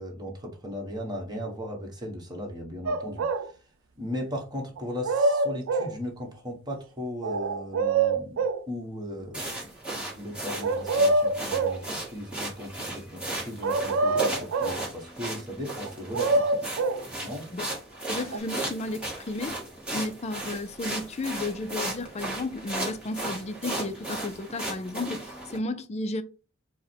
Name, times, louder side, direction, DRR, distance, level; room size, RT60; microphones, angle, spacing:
voice 1, 0.0-3.2 3.9-9.7 9.9-16.4 17.2-17.4, left 1 dB, 20° right, 1.2 m, -37 dB
sound 1, 2.9-3.5 4.8-6.0 7.2-8.6 10.6-11.8 13.6-14.8 15.9-17.0 18.3-18.4, right 3 dB, 80° right, 0.4 m, -25 dB
soupani nohama po zasnezene silnici, 9.3-25.6, right 2 dB, 5° right, 1.4 m, -36 dB
voice 2, 18.1-19.6 19.9-26.2, left 2 dB, 35° left, 0.4 m, -33 dB
4.7 x 2.2 x 4.3 m
head